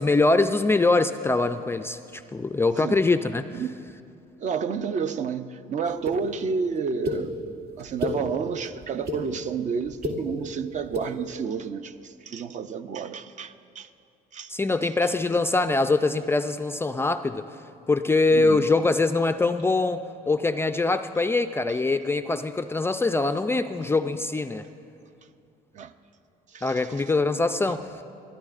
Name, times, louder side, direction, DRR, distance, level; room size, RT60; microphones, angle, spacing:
voice 1, 0.0-3.6 14.5-17.5 17.9-20.0 20.3-24.7 26.6-28.0, left 3 dB, 15° left, 0.3 m, -23 dB
voice 2, 4.4-7.3 7.8-13.9 14.3-14.5 18.3-18.7 25.7-25.9 26.5-26.8, right 6 dB, 45° right, 0.5 m, -30 dB
sound 1, 6.1-6.2 7.0-7.2 7.8-8.2 8.8-9.2 9.9-10.2 10.8-11.1, left 2 dB, 70° right, 2.3 m, -29 dB
26.5 x 13.0 x 2.5 m
cardioid pair, 110°, 17 cm